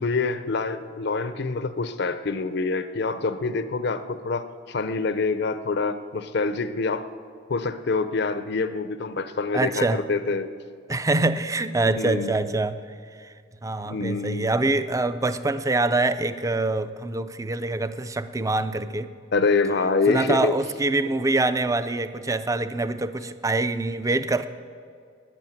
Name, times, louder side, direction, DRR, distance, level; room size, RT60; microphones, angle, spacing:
voice 1, 0.0-7.1 7.5-10.5 11.8-12.4 13.8-14.5 19.3-20.6, left 4 dB, 55° left, 11 dB, 0.6 m, -26 dB
voice 2, 9.5-10.0 10.9-12.8 13.2-13.3 13.6-19.1 20.1-24.5, right 2 dB, 15° right, 12 dB, 0.4 m, -25 dB
11.5 x 10.0 x 9.1 m, 2.2 s
head